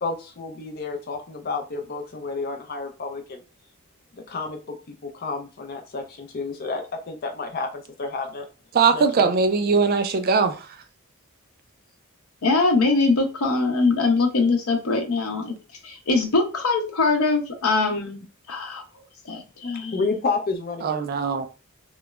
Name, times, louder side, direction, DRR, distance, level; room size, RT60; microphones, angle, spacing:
voice 1, 0.0-3.4 4.3-8.5 8.9-9.3 19.9-21.0, left 4 dB, 45° left, 0.5 m, -30 dB
voice 2, 8.7-10.6 20.8-21.5, right 5 dB, 45° right, 0.3 m, -20 dB
voice 3, 12.4-15.5 15.8-18.8 19.2-20.0, left 3 dB, 85° left, 0.7 m, -22 dB
3.0 x 2.0 x 2.3 m
head